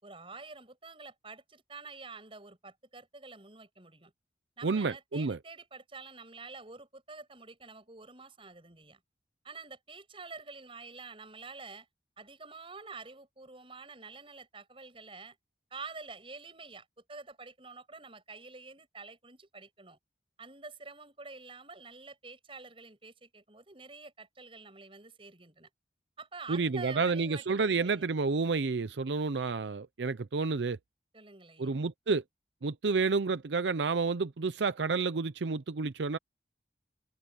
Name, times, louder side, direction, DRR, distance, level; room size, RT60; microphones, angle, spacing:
voice 1, 0.0-4.1 4.6-9.0 9.4-11.9 12.2-15.4 15.7-20.0 20.4-25.7 26.2-28.1 31.1-31.8, right 4 dB, 30° right, 7.0 m, -48 dB
voice 2, 4.6-5.4 26.5-30.8 31.6-32.2 32.6-36.2, right 4 dB, 80° right, 0.6 m, -30 dB
head